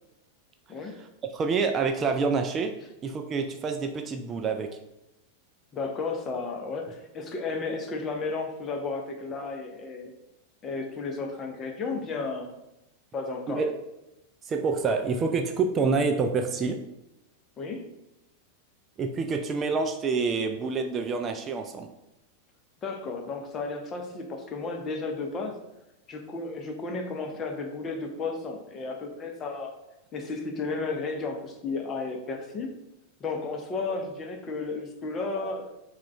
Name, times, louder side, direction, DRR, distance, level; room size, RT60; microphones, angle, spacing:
voice 1, 0.8-2.8 3.0-4.8 13.5-13.7 14.4-16.8 19.0-21.9, right 4 dB, 25° right, 5 dB, 0.3 m, -27 dB
voice 2, 5.7-10.1 10.6-12.6 13.1-13.6 17.6-17.9 22.8-25.6 26.1-29.7 30.1-32.7 33.2-35.7, left 3 dB, 25° left, 3 dB, 0.7 m, -33 dB
4.7 x 2.3 x 4.2 m, 0.90 s
figure-of-eight pair, 90°, 0 cm